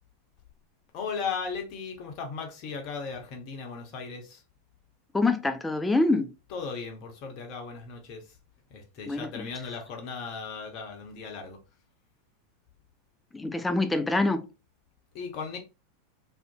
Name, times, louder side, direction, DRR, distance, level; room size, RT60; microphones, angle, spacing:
voice 1, 0.9-4.4 6.5-8.4 8.7-11.6 15.1-15.6, left 5 dB, 45° left, 0.6 m, -37 dB
voice 2, 5.1-6.3 9.1-9.5 13.3-14.5, left 2 dB, 10° left, 0.3 m, -25 dB
2.5 x 2.1 x 2.5 m
figure-of-eight pair, 85°, 0 cm